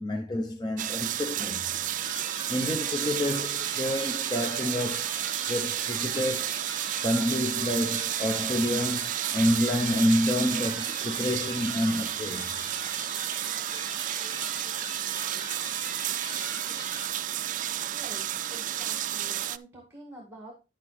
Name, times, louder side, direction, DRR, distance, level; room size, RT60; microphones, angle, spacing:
voice 1, 0.0-1.8 2.5-6.5 7.0-12.6, left 1 dB, 25° left, 0.7 m, -28 dB
sound 1, 0.8-19.6, right 12 dB, 45° right, 0.3 m, -31 dB
sound 2, 2.0-17.1, left 2 dB, 80° left, 5.0 m, -43 dB
voice 2, 17.9-20.5, right 1 dB, 15° right, 1.9 m, -47 dB
10.0 x 7.7 x 3.2 m
head